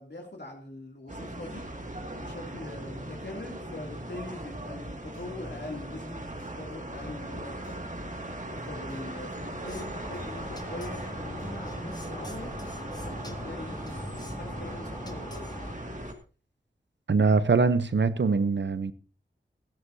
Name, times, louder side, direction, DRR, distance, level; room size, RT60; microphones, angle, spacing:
voice 1, 0.0-1.6 2.2-6.3 6.5-7.8 8.7-12.5 13.0-15.5, left 2 dB, 60° left, 2.9 m, -42 dB
sound 1, 1.1-16.1, right 1 dB, 40° right, 2.3 m, -39 dB
sound 2, 4.5-6.1 6.4-8.6 8.9-11.1 11.4-13.6 13.9-14.5, left 2 dB, 85° left, 3.1 m, -50 dB
sound 3, 9.6-15.7, left 1 dB, 20° left, 1.8 m, -43 dB
voice 2, 17.1-18.9, right 4 dB, 70° right, 0.8 m, -23 dB
16.5 x 13.0 x 2.8 m
wide cardioid pair, 45°, 19 cm